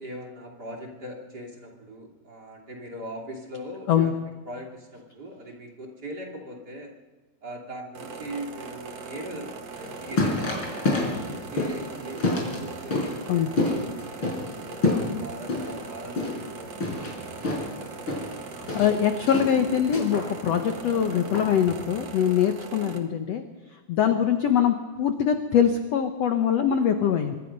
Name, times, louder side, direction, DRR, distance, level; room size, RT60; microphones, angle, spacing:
voice 1, 0.0-6.9 7.4-18.0 22.8-23.1 24.3-24.4, right 1 dB, 30° right, 0 dB, 3.0 m, -41 dB
sound 1, 7.9-23.0, right 4 dB, 50° right, 2.4 m, -40 dB
sound 2, 9.7-22.0, left 2 dB, 30° left, 5.9 m, -29 dB
voice 2, 18.7-23.4 23.9-27.4, left 8 dB, 65° left, 6 dB, 1.7 m, -23 dB
25.0 x 22.5 x 5.4 m, 1.2 s
omnidirectional pair, 4.3 m